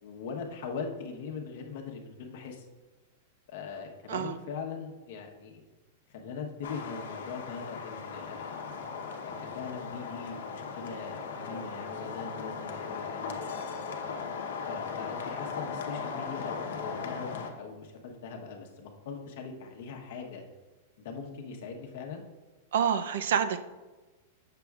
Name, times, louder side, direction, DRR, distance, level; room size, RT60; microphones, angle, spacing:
voice 1, 0.0-2.7 3.5-5.6 6.1-8.7 9.2-13.4 13.7-13.9 14.7-20.4 21.0-22.2, left 5 dB, 55° left, 2 dB, 1.0 m, -41 dB
sound 1, 6.6-17.5, left 5 dB, 80° left, 0.9 m, -38 dB
voice 2, 22.7-23.6, right 8 dB, 75° right, 11 dB, 0.4 m, -27 dB
7.7 x 6.7 x 2.4 m, 1.2 s
supercardioid pair, 170°, 0 cm